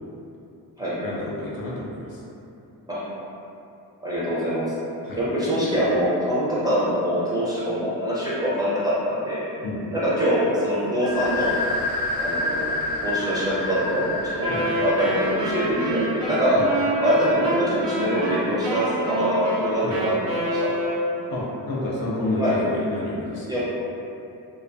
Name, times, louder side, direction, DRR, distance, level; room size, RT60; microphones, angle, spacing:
voice 1, 1.0-2.2 5.0-5.2 9.6-9.9 14.5-14.7 16.5-16.7 19.8-20.0 21.3-23.5, left 2 dB, 55° left, -5 dB, 0.5 m, -29 dB
voice 2, 4.0-4.7 5.2-9.5 9.9-11.5 12.2-12.7 13.0-14.5 14.8-16.6 17.0-20.7 22.4-22.5 23.5-23.6, equal, 10° right, -10 dB, 0.6 m, -24 dB
sound 1, 11.0-18.5, left 2 dB, 20° left, 0.8 m, -30 dB
Wind instrument woodwind instrument, 14.4-21.3, right 1 dB, 80° right, 0.7 m, -27 dB
2.2 x 2.2 x 2.5 m, 2.7 s
cardioid pair, 110°, 42 cm